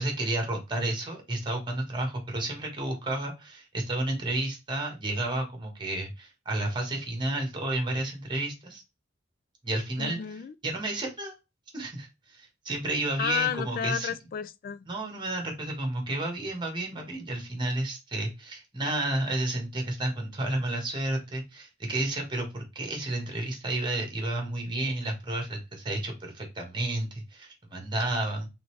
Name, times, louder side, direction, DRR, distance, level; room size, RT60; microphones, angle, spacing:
voice 1, 0.0-8.8 9.6-10.2 10.6-11.4 11.7-14.1 14.9-28.5, right 2 dB, 25° right, 1.4 m, -31 dB
voice 2, 10.0-10.5 13.2-14.9, left 9 dB, 50° left, 0.3 m, -32 dB
3.9 x 3.5 x 3.2 m
head